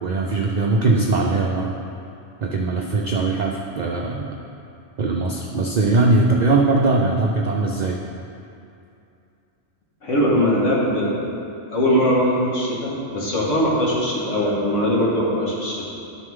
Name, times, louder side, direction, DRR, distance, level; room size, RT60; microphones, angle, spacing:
voice 1, 0.0-1.7 2.4-4.3 5.0-8.0, right 3 dB, 50° right, 0 dB, 0.5 m, -20 dB
voice 2, 10.0-11.2 11.7-15.8, equal, 75° left, -5 dB, 2.0 m, -21 dB
12.0 x 6.7 x 3.7 m, 2.7 s
omnidirectional pair, 1.3 m